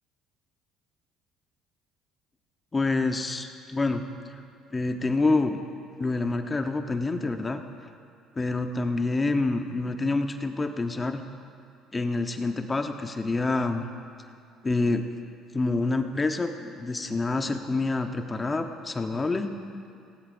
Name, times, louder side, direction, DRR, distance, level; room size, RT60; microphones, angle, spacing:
voice 1, 2.7-4.0 4.7-5.6 6.0-7.6 8.4-11.2 11.9-13.9 14.6-15.0 15.5-19.5, left 3 dB, 25° left, 6 dB, 1.0 m, -27 dB
18.0 x 17.0 x 2.6 m, 2.4 s
supercardioid pair, 85°, 0 cm